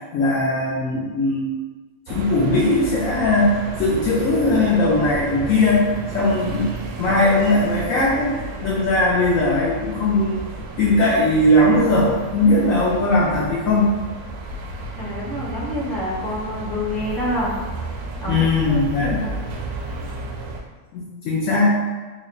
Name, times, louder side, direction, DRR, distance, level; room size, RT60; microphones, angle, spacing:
voice 1, 0.1-1.6 2.1-8.3 8.6-10.5 10.8-13.9 18.3-19.2 20.9-21.8, left 2 dB, 70° left, -6 dB, 1.0 m, -19 dB
sound 1, 2.1-20.6, right 2 dB, 80° right, 1.0 m, -32 dB
voice 2, 15.0-17.5 18.2-19.4, equal, ahead, -8 dB, 0.7 m, -28 dB
3.6 x 2.1 x 3.8 m, 1.3 s
omnidirectional pair, 1.5 m